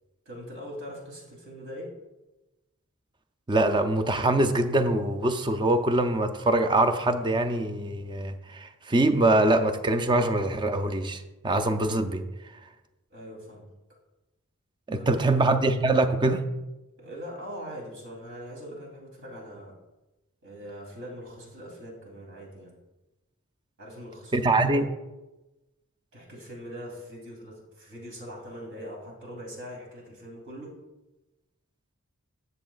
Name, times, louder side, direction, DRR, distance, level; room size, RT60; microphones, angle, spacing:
voice 1, 0.2-1.9 13.1-13.7 14.9-15.4 17.0-19.7 20.4-22.8 23.8-24.8 26.1-30.8, equal, 65° right, -2 dB, 3.0 m, -42 dB
voice 2, 3.5-12.2 14.9-16.4 24.3-24.9, right 2 dB, 20° right, 9 dB, 0.5 m, -24 dB
12.5 x 7.2 x 2.4 m, 1.0 s
head